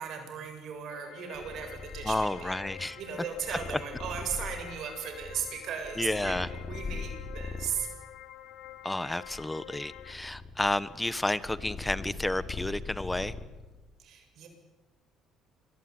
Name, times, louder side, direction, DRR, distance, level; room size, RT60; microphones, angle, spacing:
voice 1, 0.0-7.9 14.0-14.5, right 7 dB, 65° right, 5 dB, 7.9 m, -37 dB
sound 1, 0.9-10.1, left 12 dB, 75° left, 2.0 m, -48 dB
Purr, 1.3-7.9 8.5-13.8, left 4 dB, 30° left, 3.8 m, -41 dB
voice 2, 2.0-3.0 6.0-6.5 8.8-13.3, left 1 dB, 10° left, 15 dB, 1.5 m, -31 dB
27.0 x 22.0 x 9.9 m, 1.1 s
cardioid pair, 110°, 0 cm